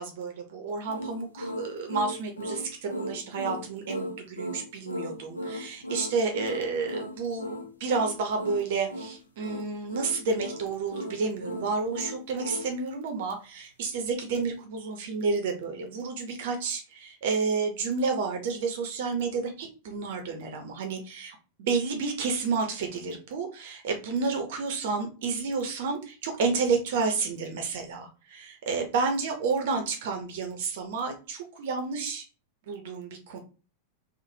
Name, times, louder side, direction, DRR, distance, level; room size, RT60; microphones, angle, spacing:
voice 1, 0.0-32.2 32.7-33.4, right 4 dB, 55° right, 4 dB, 0.5 m, -30 dB
sound 1, 0.9-12.7, left 1 dB, 80° left, 0.5 m, -37 dB
3.1 x 2.0 x 2.7 m, 0.34 s
figure-of-eight pair, 90°, 0 cm